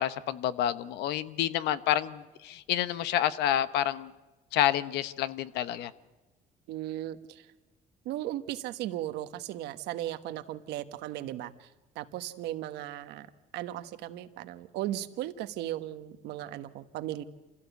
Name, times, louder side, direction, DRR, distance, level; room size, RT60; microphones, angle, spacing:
voice 1, 0.0-4.1 4.5-5.9, left 12 dB, 85° left, 14 dB, 1.0 m, -29 dB
voice 2, 6.7-7.5 8.0-13.3 13.5-17.2, right 13 dB, 85° right, 10 dB, 1.2 m, -37 dB
26.5 x 16.0 x 8.2 m, 1.1 s
cardioid pair, 110°, 17 cm